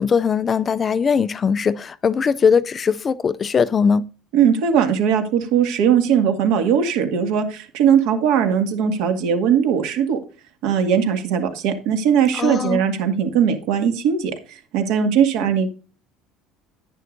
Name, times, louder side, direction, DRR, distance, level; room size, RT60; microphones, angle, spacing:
voice 1, 0.0-4.1 12.3-12.8, left 6 dB, 20° left, 0.3 m, -20 dB
voice 2, 4.3-10.2 10.6-15.7, right 8 dB, 70° right, 2.0 m, -19 dB
11.0 x 10.0 x 2.6 m
cardioid pair, 170°, 0 cm